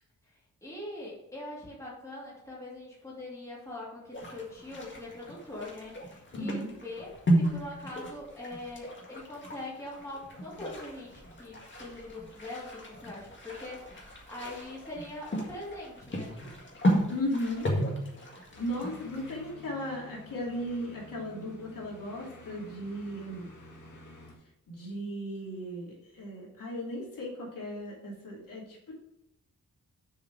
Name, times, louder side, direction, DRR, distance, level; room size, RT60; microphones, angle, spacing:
voice 1, 0.6-16.3, left 1 dB, 10° left, -6 dB, 2.6 m, -42 dB
sound 1, 4.1-19.5, equal, 35° left, 1.7 m, -34 dB
voice 2, 6.3-6.7 17.1-17.7 18.6-23.4 24.7-28.9, equal, 80° left, -4 dB, 2.8 m, -36 dB
sound 2, 18.5-24.3, left 2 dB, 65° left, 1.9 m, -50 dB
6.9 x 4.9 x 6.0 m, 0.85 s
wide cardioid pair, 175°, 32 cm